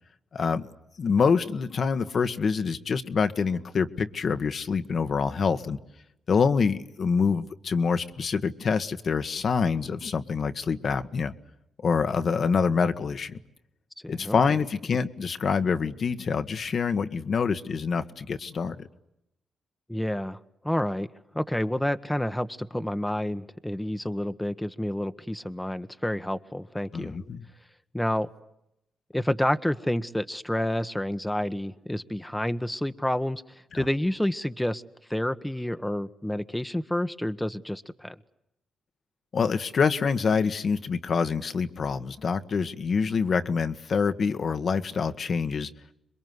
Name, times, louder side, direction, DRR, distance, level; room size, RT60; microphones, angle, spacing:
voice 1, 0.3-0.7 1.0-5.8 6.3-11.3 11.8-13.4 14.1-18.7 26.9-27.4 33.7-33.9 39.3-45.7, left 5 dB, 55° left, 9 dB, 1.5 m, -26 dB
voice 2, 14.0-14.4 19.9-21.1 21.3-27.2 27.9-28.3 29.1-33.4 33.7-34.8 35.1-38.1, left 1 dB, 5° left, 10 dB, 1.3 m, -29 dB
27.0 x 22.0 x 9.6 m, 0.82 s
supercardioid pair, 60°, 0 cm